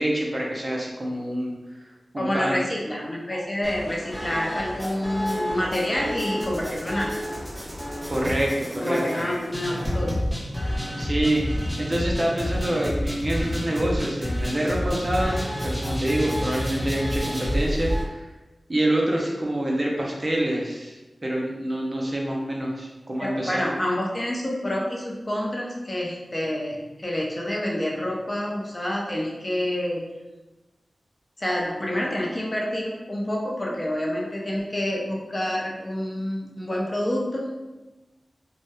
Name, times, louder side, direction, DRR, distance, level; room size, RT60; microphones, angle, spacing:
voice 1, 0.0-1.5 2.1-2.6 8.1-9.0 10.6-11.4 11.8-18.2 18.7-21.0 21.2-23.6, right 1 dB, 40° right, -2 dB, 0.5 m, -26 dB
voice 2, 2.2-7.2 8.8-10.2 23.2-30.1 31.4-37.6, left 1 dB, 30° left, -3 dB, 0.5 m, -28 dB
sound 1, 3.6-18.0, equal, 10° right, 0.8 m, -29 dB
2.7 x 2.0 x 2.2 m, 1.1 s
wide cardioid pair, 65°, 0 cm